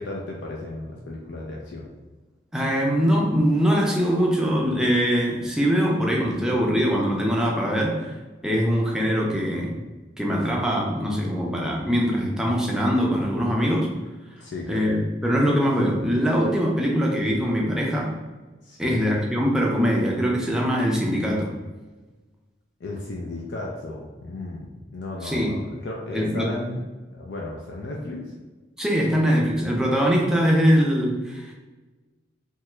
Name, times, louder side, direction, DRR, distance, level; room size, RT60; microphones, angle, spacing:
voice 1, 0.0-1.9 14.4-14.8 18.6-19.0 22.8-26.8 27.1-28.3, left 2 dB, 75° left, -2 dB, 0.4 m, -34 dB
voice 2, 2.5-8.1 8.4-9.8 10.2-13.9 14.7-18.1 18.8-21.5 25.2-25.6 26.1-26.5 28.8-31.5, equal, 5° right, -3 dB, 0.4 m, -22 dB
2.8 x 2.3 x 3.1 m, 1.2 s
head